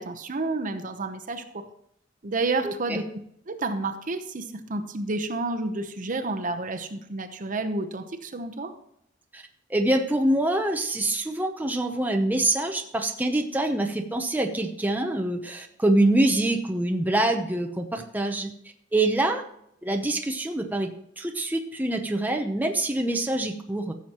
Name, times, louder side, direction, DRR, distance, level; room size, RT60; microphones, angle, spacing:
voice 1, 0.0-1.6 2.2-3.0 3.5-8.7, right 3 dB, 45° right, 7 dB, 0.9 m, -30 dB
voice 2, 2.6-3.0 9.3-9.4 9.7-18.5 18.9-19.4 19.8-23.9, right 1 dB, 10° right, 4 dB, 0.7 m, -25 dB
15.0 x 7.1 x 3.0 m, 0.73 s
head